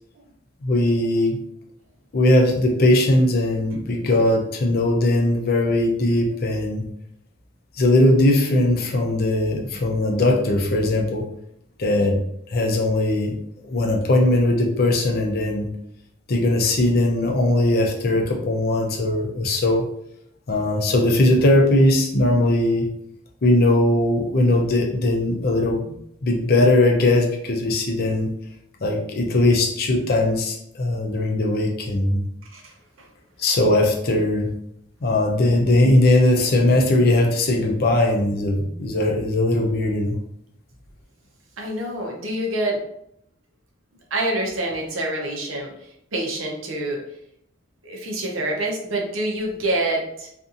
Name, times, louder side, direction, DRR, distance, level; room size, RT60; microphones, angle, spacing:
voice 1, 0.6-1.4 2.1-6.9 7.8-11.3 11.8-12.2 12.5-13.4 13.6-15.7 16.3-19.8 20.5-22.9 23.4-25.9 26.2-28.3 28.8-32.2 33.4-34.5 35.0-40.1, left 1 dB, 50° left, 1 dB, 0.5 m, -19 dB
voice 2, 41.6-42.8 44.1-45.7 46.1-47.0 47.8-50.3, right 1 dB, 90° right, 0 dB, 0.7 m, -26 dB
2.6 x 2.5 x 2.5 m, 0.75 s
head